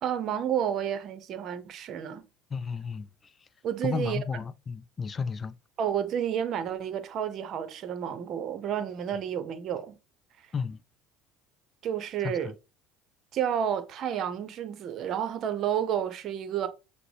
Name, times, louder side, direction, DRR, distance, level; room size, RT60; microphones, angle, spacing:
voice 1, 0.0-2.3 3.6-4.2 5.8-10.0 11.8-12.5 13.3-16.7, right 9 dB, 55° right, 0.7 m, -30 dB
voice 2, 2.5-3.3 3.8-5.5 10.5-10.8 12.2-12.5, left 5 dB, 30° left, 0.4 m, -33 dB
5.9 x 2.1 x 3.3 m
hypercardioid pair, 75°, 0 cm